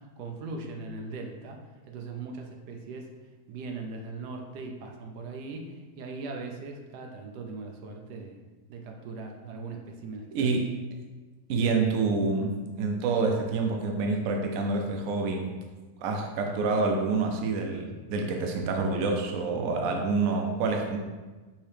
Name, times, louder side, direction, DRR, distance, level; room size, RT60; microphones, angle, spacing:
voice 1, 0.2-1.6 1.9-3.1 3.5-8.4 8.7-10.6, right 3 dB, 85° right, 2 dB, 1.2 m, -39 dB
voice 2, 10.3-10.7 11.5-15.5 16.0-21.0, right 3 dB, 65° right, 2 dB, 0.9 m, -27 dB
5.5 x 2.9 x 3.3 m, 1.3 s
omnidirectional pair, 1.7 m